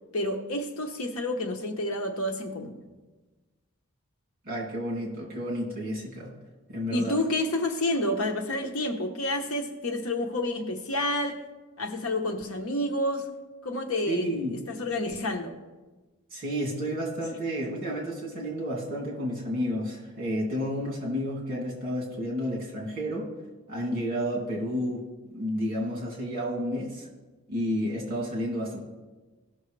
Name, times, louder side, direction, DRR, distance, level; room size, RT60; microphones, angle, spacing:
voice 1, 0.1-2.8 6.9-11.4 11.8-13.3 13.6-14.3 14.7-15.6, left 1 dB, 80° left, 5 dB, 1.0 m, -29 dB
voice 2, 4.4-6.3 6.7-7.2 14.1-14.6 16.3-23.3 23.7-25.0 25.3-27.1 27.5-28.8, equal, 40° right, -3 dB, 2.8 m, -31 dB
16.5 x 6.4 x 3.3 m, 1.2 s
head